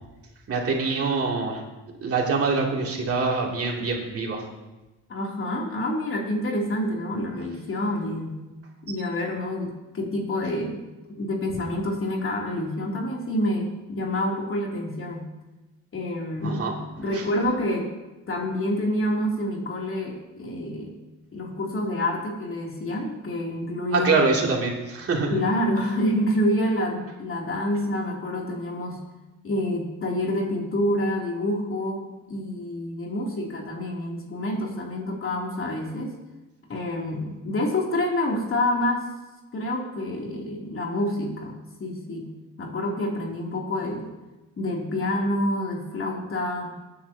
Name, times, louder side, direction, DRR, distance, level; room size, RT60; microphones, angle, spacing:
voice 1, 0.5-1.6 2.0-4.5 16.4-16.7 17.1-17.2 23.9-25.3, right 4 dB, 50° right, -1 dB, 2.9 m, -24 dB
voice 2, 5.1-8.4 8.8-15.3 15.9-16.6 17.0-17.9 18.3-20.9 21.3-24.1 25.3-29.0 29.4-36.1 36.7-39.1 39.5-44.1 44.6-46.7, left 1 dB, 45° left, -1 dB, 3.0 m, -27 dB
19.5 x 9.8 x 2.9 m, 1.1 s
cardioid pair, 90°, 30 cm